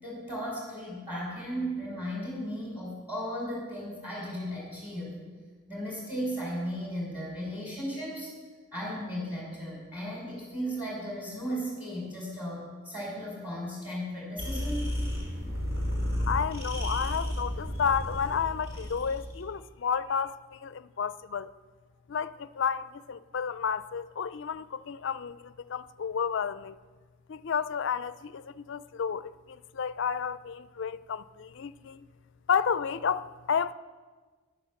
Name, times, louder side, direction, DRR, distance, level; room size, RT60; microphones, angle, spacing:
voice 1, 0.0-5.1 5.7-8.3 8.7-14.8, equal, 10° right, 5.1 m, -35 dB
sound 1, 14.4-19.4, left 1 dB, 50° right, 4.3 m, -32 dB
voice 2, 16.3-21.5 22.1-26.7 27.3-32.1 32.5-33.7, left 7 dB, 55° left, 0.4 m, -31 dB
11.5 x 10.0 x 7.0 m
head